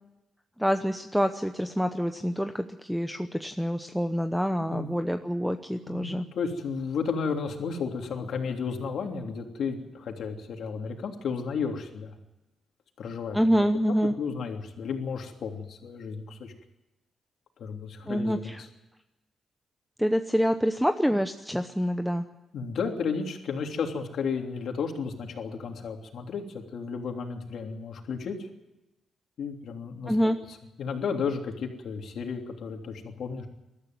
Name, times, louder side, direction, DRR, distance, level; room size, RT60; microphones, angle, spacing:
voice 1, 0.6-6.2 13.3-14.1 18.0-18.6 20.0-22.2 30.1-30.4, equal, ahead, 8 dB, 0.8 m, -26 dB
voice 2, 4.6-4.9 5.9-12.2 13.0-16.5 17.6-18.7 22.5-28.5 29.4-30.1 30.5-33.5, left 5 dB, 70° left, 3 dB, 3.2 m, -33 dB
22.0 x 13.5 x 9.4 m, 0.99 s
cardioid pair, 120°, 0 cm